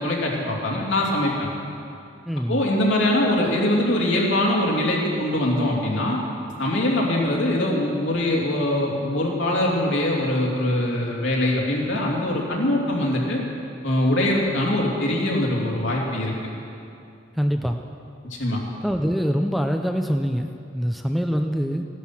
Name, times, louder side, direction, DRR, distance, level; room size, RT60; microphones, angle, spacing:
voice 1, 0.0-1.5 2.5-6.2 6.6-13.4 13.8-16.3 18.3-18.6, left 1 dB, 75° left, -2 dB, 2.9 m, -22 dB
voice 2, 2.3-2.6 17.4-17.8 18.8-21.9, equal, ahead, 4 dB, 0.5 m, -24 dB
16.0 x 11.5 x 6.1 m, 2.6 s
head